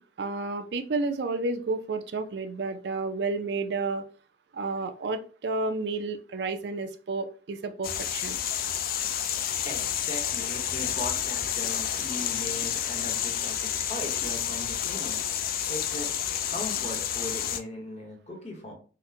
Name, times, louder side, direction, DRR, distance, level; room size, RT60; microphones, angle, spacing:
voice 1, 0.0-4.0 4.5-8.4, right 3 dB, 75° right, 8 dB, 0.4 m, -31 dB
sound 1, 7.8-17.6, left 9 dB, 55° left, 0.3 m, -30 dB
voice 2, 9.6-15.2 15.7-16.1 16.5-18.7, left 1 dB, 35° left, 1 dB, 0.9 m, -38 dB
3.8 x 2.1 x 2.7 m, 0.39 s
head